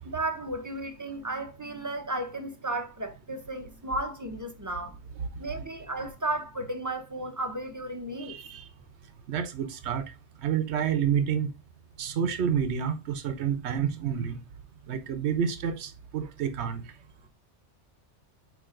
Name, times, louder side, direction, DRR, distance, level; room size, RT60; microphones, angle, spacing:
voice 1, 0.0-5.0 5.4-8.4, right 1 dB, 20° right, 0.8 m, -34 dB
voice 2, 8.2-8.7 9.3-10.1 10.4-11.5 12.0-14.4 14.9-16.8, right 8 dB, 65° right, 1.1 m, -29 dB
8.6 x 2.9 x 3.8 m
omnidirectional pair, 1.2 m